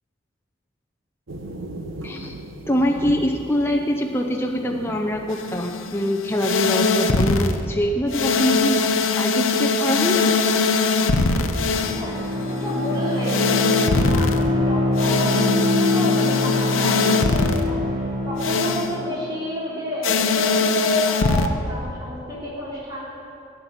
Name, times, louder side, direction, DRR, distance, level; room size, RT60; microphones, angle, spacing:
sound 1, 1.3-6.8, right 1 dB, 75° right, 0.9 m, -38 dB
voice 1, 2.0-10.4, equal, 10° left, 1 dB, 0.5 m, -24 dB
sound 2, 5.3-7.6 8.1-14.4 15.0-17.6 18.4-18.9 20.0-21.5, left 4 dB, 90° left, 0.7 m, -21 dB
Bowed string instrument, 11.4-19.1, left 2 dB, 50° right, 3.3 m, -24 dB
voice 2, 11.7-17.9 18.2-23.0, left 1 dB, 20° right, -8 dB, 3.3 m, -30 dB
12.5 x 5.9 x 8.9 m, 2.8 s
head